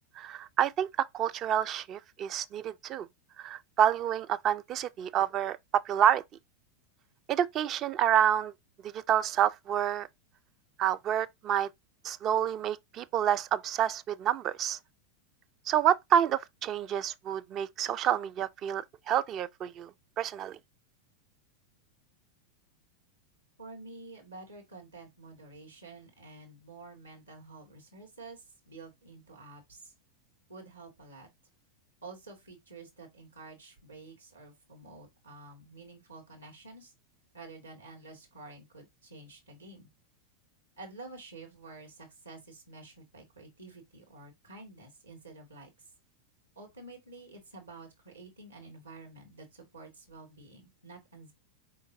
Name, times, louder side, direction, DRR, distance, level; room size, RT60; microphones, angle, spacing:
voice 1, 0.2-3.1 3.4-6.2 7.3-8.5 8.8-10.1 10.8-11.7 12.0-14.8 15.7-19.9 20.2-20.6, right 10 dB, 35° right, 0.4 m, -28 dB
voice 2, 23.6-29.9 30.5-31.3 32.0-36.9 37.3-39.9 40.8-45.7 46.6-51.3, right 3 dB, 80° right, 2.2 m, -49 dB
5.0 x 3.8 x 2.7 m
figure-of-eight pair, 90°, 0 cm